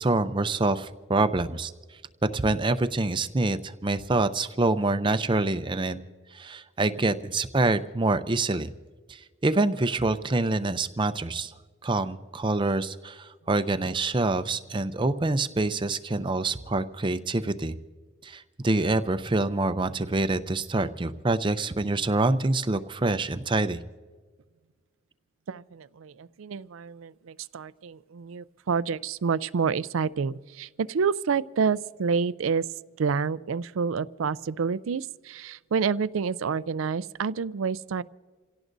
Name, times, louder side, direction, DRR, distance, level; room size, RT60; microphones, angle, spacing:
voice 1, 0.0-1.7 2.3-6.0 6.3-8.7 9.1-11.5 11.8-17.8 18.2-23.8, right 2 dB, 25° right, 10 dB, 0.5 m, -26 dB
voice 2, 25.5-32.7 33.0-38.0, right 5 dB, 85° right, 17 dB, 0.4 m, -28 dB
28.0 x 17.0 x 2.6 m, 1.5 s
head